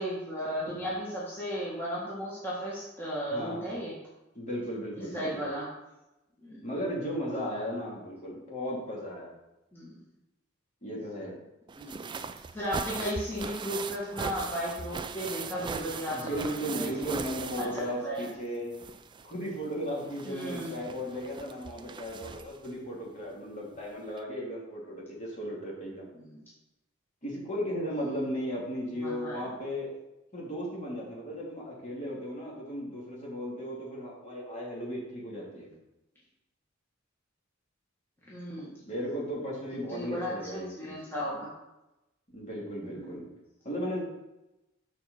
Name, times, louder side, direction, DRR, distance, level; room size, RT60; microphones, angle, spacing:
voice 1, 0.0-4.0 4.9-5.7 6.4-6.6 9.7-10.0 11.8-12.1 12.5-17.1 17.6-18.3 20.2-20.8 26.1-26.4 27.9-28.2 28.9-29.4 38.3-38.7 39.9-41.5 42.8-43.1, equal, 10° left, -7 dB, 1.6 m, -35 dB
voice 2, 3.3-3.7 4.3-5.5 6.6-9.4 10.8-11.3 16.1-18.7 19.2-26.1 27.2-29.9 30.3-35.7 38.6-41.0 42.3-43.2 43.6-44.1, equal, 35° left, -4 dB, 2.5 m, -36 dB
sound 1, 11.7-18.5 18.7-22.7 23.8-23.9 24.2-24.3, right 5 dB, 25° right, 0.3 m, -40 dB
6.7 x 4.2 x 6.5 m, 0.95 s
head